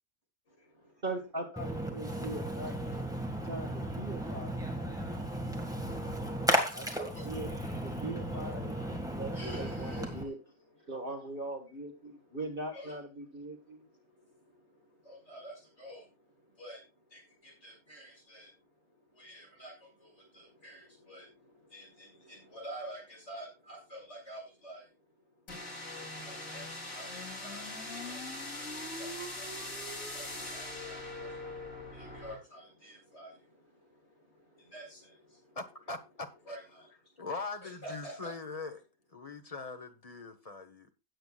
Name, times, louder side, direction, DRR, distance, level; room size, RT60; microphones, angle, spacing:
voice 1, 1.0-2.7 3.4-4.9 6.7-7.5 7.8-10.4 10.9-13.8, right 2 dB, 40° right, 1.8 m, -41 dB
Splash splatter, 1.6-10.2, right 1 dB, 5° right, 1.8 m, -35 dB
voice 2, 3.2-11.2 11.6-35.7 36.2-37.2 37.6-38.4 40.2-40.4, right 1 dB, 50° left, 6.6 m, -51 dB
sound 1, 25.5-32.4, left 2 dB, 70° left, 3.5 m, -41 dB
voice 3, 35.5-36.3 37.2-38.8 39.1-40.9, left 3 dB, 30° left, 1.1 m, -41 dB
17.0 x 8.0 x 2.4 m
omnidirectional pair, 1.5 m